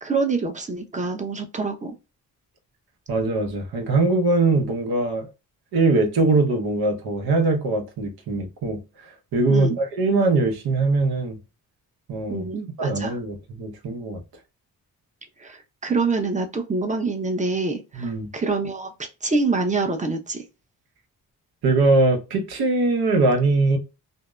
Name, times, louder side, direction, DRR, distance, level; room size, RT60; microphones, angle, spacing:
voice 1, 0.0-1.9 9.5-9.8 12.3-13.1 15.4-20.4, right 3 dB, 20° right, 0.6 m, -26 dB
voice 2, 3.1-5.3 5.7-11.4 12.1-12.5 12.8-14.2 17.9-18.3 21.6-23.8, right 3 dB, 75° right, 0.9 m, -22 dB
2.7 x 2.0 x 2.2 m
cardioid pair, 65°, 38 cm